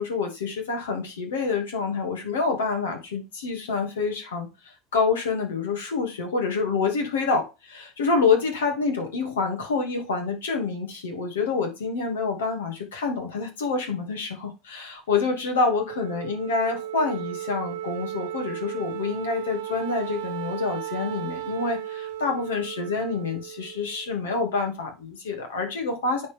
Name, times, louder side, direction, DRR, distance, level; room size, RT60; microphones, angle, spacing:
voice 1, 0.0-4.5 4.9-26.3, left 4 dB, 80° left, 2.6 m, -27 dB
Wind instrument woodwind instrument, 15.8-24.4, right 12 dB, 75° right, 1.4 m, -35 dB
9.5 x 4.6 x 3.7 m
hypercardioid pair, 75°, 0 cm